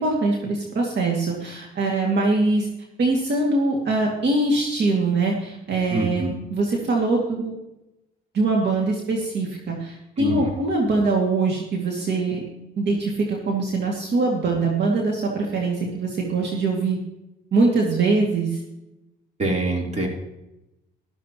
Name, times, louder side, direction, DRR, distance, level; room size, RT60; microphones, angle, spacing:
voice 1, 0.0-2.7 3.0-7.6 8.3-12.4 12.8-17.0 17.5-18.6, right 3 dB, 60° right, -1 dB, 2.4 m, -23 dB
voice 2, 5.9-6.3 10.2-10.5 19.4-20.1, right 2 dB, 35° right, 0 dB, 3.6 m, -24 dB
14.0 x 13.0 x 3.0 m, 0.92 s
cardioid pair, 90°, 20 cm